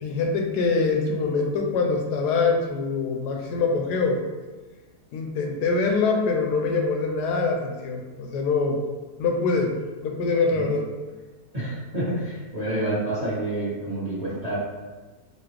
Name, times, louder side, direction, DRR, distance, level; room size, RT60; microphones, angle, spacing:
voice 1, 0.0-4.2 5.1-8.8 9.2-9.8 10.0-10.9, left 4 dB, 85° left, 2 dB, 1.2 m, -24 dB
voice 2, 11.5-14.6, right 1 dB, 25° right, -12 dB, 1.3 m, -28 dB
4.3 x 2.7 x 3.0 m, 1.3 s
omnidirectional pair, 1.7 m